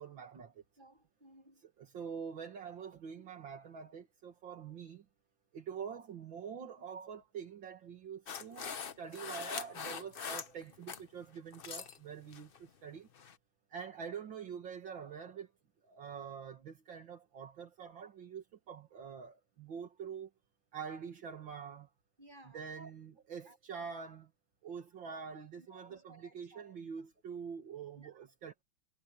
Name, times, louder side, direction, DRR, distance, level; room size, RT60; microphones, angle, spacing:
voice 1, 0.0-0.6 1.8-5.1 5.5-13.1 13.7-15.5 15.8-20.3 20.7-21.9 22.5-24.3 24.6-28.6, right 6 dB, 70° right, 2.6 m, -45 dB
voice 2, 0.8-1.7 22.2-22.9 23.1-23.9 25.0-27.1 28.0-28.3, right 2 dB, 20° right, 8.3 m, -59 dB
sound 1, 8.3-11.0 11.4-12.0 12.3-12.6 13.1-13.3, left 6 dB, 55° left, 0.6 m, -42 dB
omnidirectional pair, 2.2 m